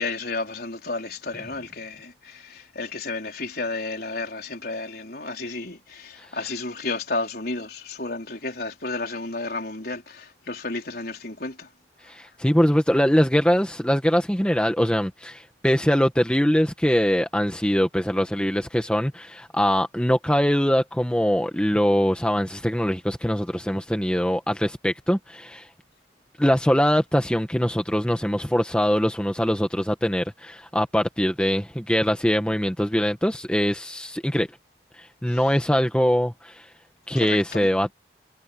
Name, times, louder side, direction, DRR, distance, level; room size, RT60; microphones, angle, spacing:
voice 1, 0.0-11.7 35.3-35.4 37.1-37.7, left 3 dB, 55° left, 4.7 m, -32 dB
voice 2, 12.1-25.7 26.4-34.5 35.2-36.6 37.1-37.9, equal, 5° left, 1.4 m, -22 dB
head